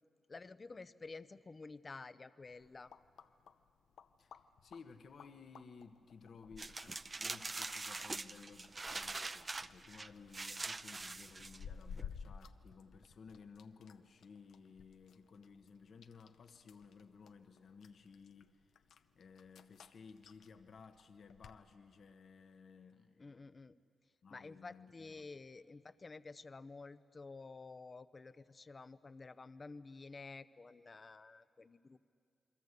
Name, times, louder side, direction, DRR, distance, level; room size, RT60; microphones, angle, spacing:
voice 1, 0.3-2.9 23.2-23.8 24.3-32.0, left 3 dB, 35° left, 13 dB, 0.7 m, -51 dB
sound 1, 2.4-21.6, left 6 dB, 90° left, 0.7 m, -56 dB
voice 2, 4.2-18.8 19.1-23.3 24.2-25.3, left 5 dB, 70° left, 7 dB, 1.1 m, -57 dB
sound 2, 6.6-12.0, right 3 dB, 35° right, 0.6 m, -43 dB
28.5 x 22.5 x 8.2 m, 2.4 s
cardioid pair, 90°, 0 cm